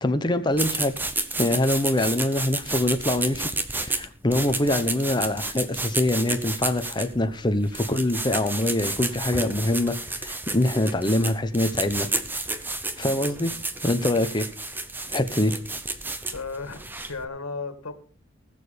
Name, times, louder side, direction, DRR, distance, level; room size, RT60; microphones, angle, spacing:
voice 1, 0.0-0.9 1.4-12.1 13.0-13.5 13.8-14.5 15.1-15.6, left 1 dB, 20° left, 1.0 m, -24 dB
sound 1, 0.5-17.2, right 2 dB, 10° right, 0.8 m, -31 dB
voice 2, 16.3-17.9, left 4 dB, 80° left, 2.0 m, -35 dB
19.5 x 6.9 x 5.2 m
head